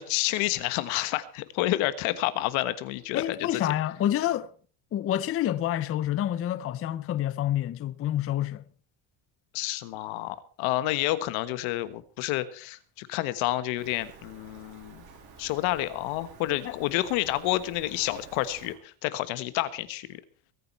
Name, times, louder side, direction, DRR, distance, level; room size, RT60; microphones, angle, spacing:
voice 1, 0.0-3.7 9.5-15.0 15.4-20.2, left 16 dB, 85° left, 1.5 m, -29 dB
voice 2, 3.1-4.5 4.9-8.6 16.6-16.8, left 12 dB, 30° left, 0.6 m, -28 dB
Rain, 13.8-18.8, right 4 dB, 50° right, 8.0 m, -50 dB
22.5 x 9.7 x 4.5 m
cardioid pair, 155°, 46 cm